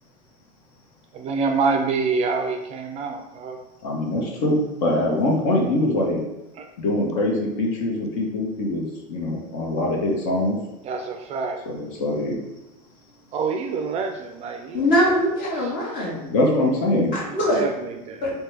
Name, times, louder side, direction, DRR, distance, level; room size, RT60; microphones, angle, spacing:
voice 1, 1.1-3.6 6.6-6.7 10.8-11.6 13.3-14.8 15.6-15.7 17.5-18.3, right 4 dB, 35° right, 4 dB, 0.4 m, -26 dB
voice 2, 3.8-6.2 6.8-10.6 11.7-12.4 16.3-17.2, left 1 dB, 60° left, 0 dB, 1.0 m, -23 dB
voice 3, 14.7-16.3 17.1-17.6 18.2-18.3, equal, 45° left, -4 dB, 1.4 m, -22 dB
4.5 x 2.2 x 3.3 m, 0.93 s
supercardioid pair, 130°, 20 cm